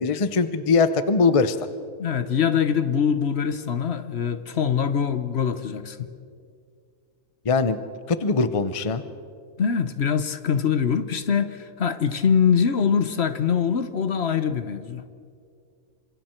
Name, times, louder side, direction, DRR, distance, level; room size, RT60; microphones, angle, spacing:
voice 1, 0.0-1.6 7.4-7.8 8.1-9.0, left 4 dB, 35° left, 0.6 m, -21 dB
voice 2, 2.0-6.1 9.6-15.0, left 7 dB, 50° left, 1.0 m, -23 dB
28.0 x 26.0 x 4.5 m
omnidirectional pair, 1.6 m